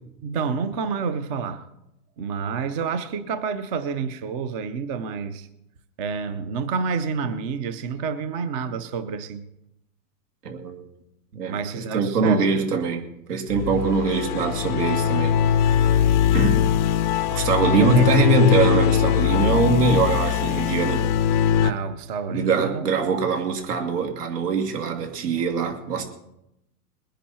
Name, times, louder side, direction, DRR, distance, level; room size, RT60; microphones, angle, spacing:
voice 1, 0.2-1.7 2.2-5.5 6.0-9.4 11.5-12.6 17.8-18.1 21.6-22.8, right 5 dB, 20° right, 0.5 m, -28 dB
voice 2, 10.4-10.8 11.3-13.0 13.3-16.0 16.3-16.7 17.3-21.0 22.3-26.0, right 4 dB, 75° right, 2.8 m, -23 dB
sound 1, 13.5-21.7, left 9 dB, 30° left, 0.5 m, -21 dB
21.0 x 10.0 x 4.3 m
hypercardioid pair, 155°, 47 cm